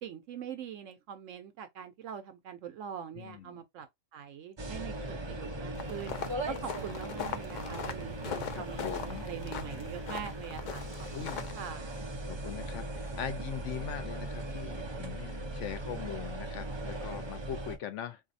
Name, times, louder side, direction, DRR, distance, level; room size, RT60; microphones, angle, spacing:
voice 1, 0.0-3.9 4.1-6.2 6.5-10.8 11.3-12.0, right 8 dB, 80° right, 1.0 m, -43 dB
voice 2, 3.2-3.6 8.5-9.3 11.1-11.5 12.2-18.2, left 9 dB, 70° left, 1.0 m, -41 dB
sound 1, 4.6-17.8, right 1 dB, 30° right, 0.6 m, -39 dB
sound 2, 5.8-11.7, left 6 dB, 55° left, 0.5 m, -41 dB
3.9 x 2.7 x 2.6 m
omnidirectional pair, 1.3 m